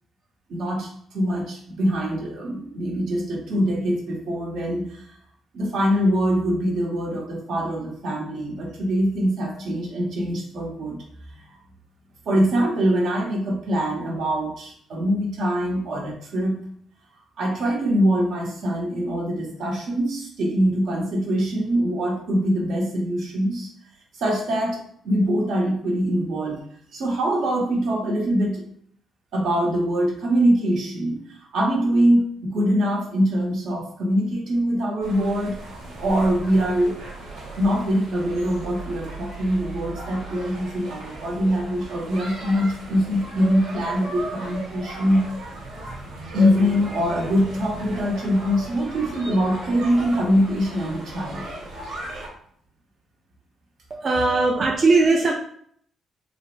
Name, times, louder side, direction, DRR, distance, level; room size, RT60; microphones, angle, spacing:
voice 1, 0.5-0.9 1.1-5.2 5.5-11.0 11.3-11.6 12.3-16.6 17.4-23.7 24.2-24.8 25.0-26.6 26.9-28.6 29.3-35.6 36.0-37.0 37.6-45.3 46.3-51.5, equal, 70° right, -1 dB, 1.0 m, -23 dB
sound 1, 35.0-52.3, right 2 dB, 90° right, 1.3 m, -37 dB
voice 2, 53.9-55.3, right 3 dB, 45° right, -2 dB, 0.4 m, -19 dB
3.2 x 2.0 x 3.1 m, 0.63 s
cardioid pair, 90°, 0 cm